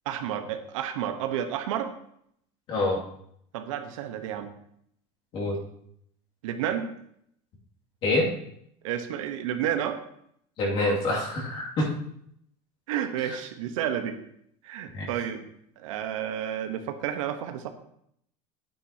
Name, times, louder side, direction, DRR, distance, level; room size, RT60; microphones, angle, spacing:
voice 1, 0.0-1.9 3.5-4.5 6.4-6.9 8.8-10.0 11.8-11.9 12.9-14.2 14.6-15.5 15.8-17.7, right 10 dB, 80° right, 7 dB, 1.1 m, -31 dB
voice 2, 2.7-3.0 5.3-5.6 8.0-8.3 10.6-11.9 14.9-15.1, left 2 dB, 35° left, -3 dB, 2.4 m, -26 dB
11.5 x 9.3 x 2.9 m, 0.70 s
supercardioid pair, 170°, 17 cm